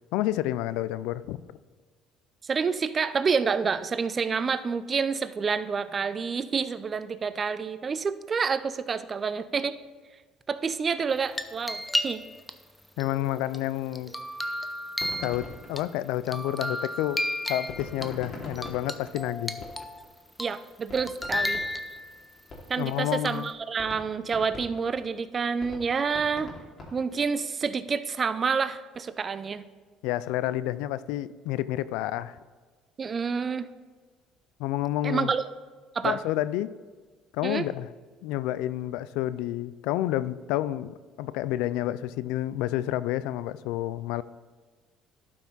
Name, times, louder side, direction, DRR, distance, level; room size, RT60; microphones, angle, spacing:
voice 1, 0.1-1.6 13.0-14.1 15.2-17.2 17.5-19.7 22.8-23.5 30.0-32.4 34.6-35.3 36.0-36.7 37.3-37.9 38.2-44.2, left 14 dB, 80° left, 16 dB, 0.3 m, -29 dB
voice 2, 2.4-9.8 10.5-12.2 20.4-21.6 22.7-26.5 26.9-29.6 33.0-33.7 35.0-35.4 35.9-36.2 37.4-37.7, right 5 dB, 35° right, 13 dB, 0.5 m, -28 dB
sound 1, 11.1-12.5 13.0-15.8 16.3-18.1 18.6-20.0 20.4-20.7 21.0-22.3 23.3-23.5, left 1 dB, 5° left, 0.7 m, -33 dB
sound 2, 14.9-16.7 17.7-20.1 20.4-20.5 20.9-23.0 23.3-23.4 23.8-27.4, left 2 dB, 40° left, 2.6 m, -43 dB
11.5 x 5.7 x 4.0 m, 1.4 s
supercardioid pair, 80°, 0 cm